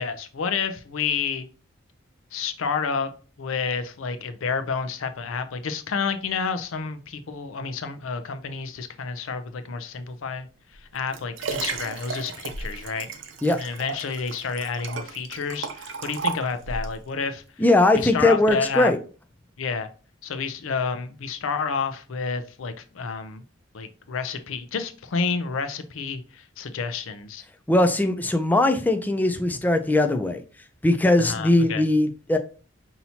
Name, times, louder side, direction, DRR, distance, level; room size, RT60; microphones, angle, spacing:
voice 1, 0.0-1.5 2.3-3.1 3.4-10.5 10.9-13.1 13.5-17.4 17.9-18.9 19.6-19.9 20.2-23.4 23.7-27.4 31.2-31.8, left 5 dB, 85° left, 0.5 m, -29 dB
Liquid, 10.7-17.0 17.6-17.7, right 4 dB, 65° right, 0.6 m, -34 dB
voice 2, 17.6-19.0 27.7-30.4 30.8-32.4, left 2 dB, 10° left, 0.3 m, -20 dB
5.5 x 2.8 x 2.8 m
head